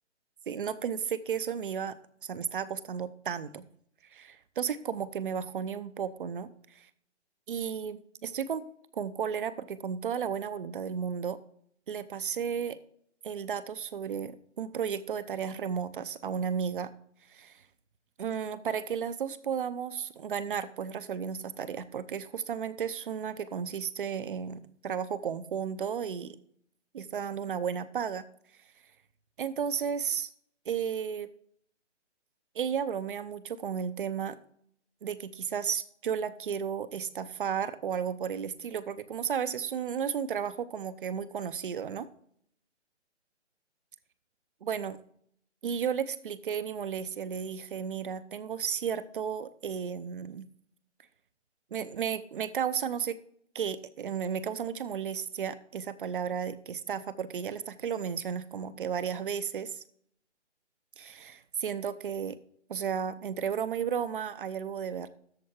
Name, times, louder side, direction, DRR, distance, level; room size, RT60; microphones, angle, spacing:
voice 1, 0.5-2.0 2.2-3.7 4.1-6.9 7.5-8.6 8.9-11.4 11.9-12.8 13.2-16.9 17.3-17.6 18.2-26.4 26.9-28.2 29.4-30.3 30.7-31.3 32.5-34.4 35.0-42.1 44.6-45.0 45.6-50.5 51.7-53.2 53.5-59.8 61.0-62.4 62.7-65.1, right 7 dB, 45° right, 15 dB, 0.7 m, -33 dB
13.5 x 4.5 x 4.4 m, 0.64 s
hypercardioid pair, 155°, 36 cm